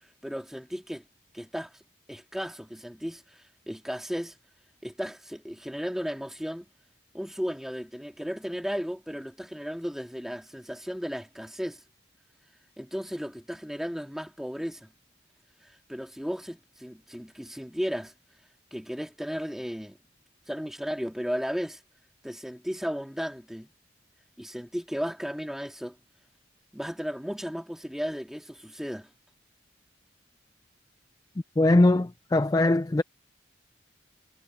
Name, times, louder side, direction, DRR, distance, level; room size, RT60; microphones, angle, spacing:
voice 1, 0.2-1.0 1.3-1.8 2.1-4.4 4.8-6.7 7.1-11.8 12.8-14.9 15.6-18.1 18.7-20.0 20.5-21.8 22.2-23.7 24.4-26.0 26.7-29.1, equal, ahead, 2.3 m, -35 dB
voice 2, 31.6-33.0, left 2 dB, 20° left, 0.3 m, -21 dB
head